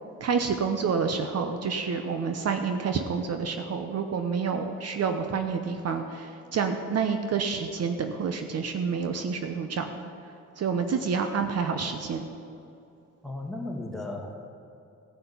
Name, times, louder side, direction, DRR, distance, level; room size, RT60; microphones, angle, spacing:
voice 1, 0.2-10.1 10.6-12.3, right 5 dB, 55° right, 6 dB, 0.9 m, -28 dB
voice 2, 13.2-14.3, left 2 dB, ahead, -2 dB, 2.3 m, -35 dB
16.5 x 5.7 x 7.0 m, 2.7 s
cardioid pair, 90°, 30 cm